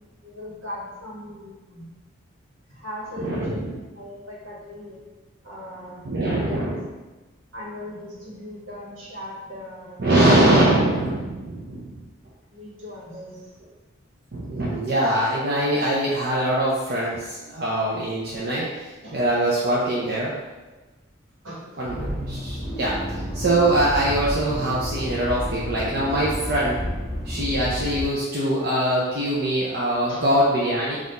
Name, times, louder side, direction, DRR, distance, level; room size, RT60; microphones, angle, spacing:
voice 1, 0.2-1.9 2.7-5.0 5.4-6.7 7.5-10.8 12.5-13.5 19.0-19.2 21.4-21.8 30.1-30.2, left 1 dB, 80° right, -5 dB, 1.3 m, -38 dB
voice 2, 3.2-3.7 6.0-6.8 10.0-12.0 14.3-20.3 21.8-22.9 23.3-26.8 27.2-31.0, right 1 dB, 50° right, -6 dB, 0.6 m, -23 dB
Accelerating revving vroom, 21.8-28.1, equal, ahead, 0.8 m, -31 dB
4.0 x 2.5 x 4.0 m, 1.2 s
head